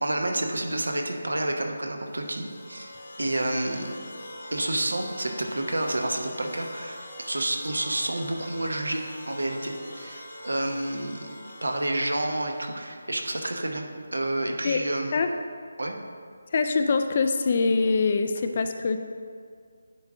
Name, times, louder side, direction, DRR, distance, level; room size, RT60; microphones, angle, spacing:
voice 1, 0.0-2.9 3.2-3.9 4.5-11.3 11.6-13.8 14.1-15.2 15.8-16.0, right 1 dB, 80° right, 3 dB, 0.9 m, -29 dB
sound 1, 1.9-13.1, left 1 dB, 65° left, 1.3 m, -43 dB
voice 2, 16.5-19.0, left 4 dB, 40° left, 7 dB, 0.4 m, -24 dB
9.9 x 3.6 x 3.8 m, 2.1 s
figure-of-eight pair, 155°, 0 cm